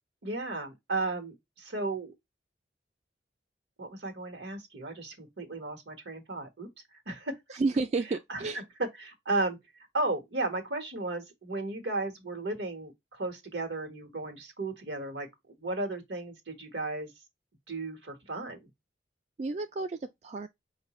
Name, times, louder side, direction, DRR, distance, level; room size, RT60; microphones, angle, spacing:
voice 1, 0.2-2.1 3.8-6.7 7.1-7.6 8.3-8.4 8.8-9.6 9.9-17.1 17.7-18.7, right 2 dB, 80° right, 1.4 m, -34 dB
voice 2, 7.5-8.6 19.4-20.5, right 3 dB, 40° right, 0.3 m, -31 dB
4.8 x 2.6 x 2.9 m
head